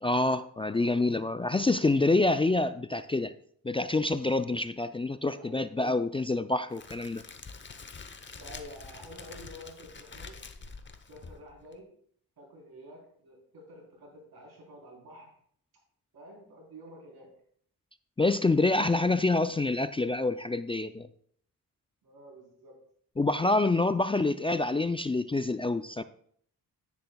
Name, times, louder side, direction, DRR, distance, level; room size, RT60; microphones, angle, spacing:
voice 1, 0.0-3.3 3.6-7.2 18.2-21.1 23.2-26.0, left 2 dB, 15° left, 11 dB, 0.3 m, -27 dB
voice 2, 5.3-5.7 8.4-10.3 11.1-11.9 12.4-15.3 16.1-17.3 22.0-22.8, equal, 85° right, -1 dB, 3.9 m, -49 dB
Crackle, 6.7-11.8, left 4 dB, 30° left, 0.8 m, -46 dB
10.5 x 9.9 x 2.3 m, 0.62 s
cardioid pair, 75°, 36 cm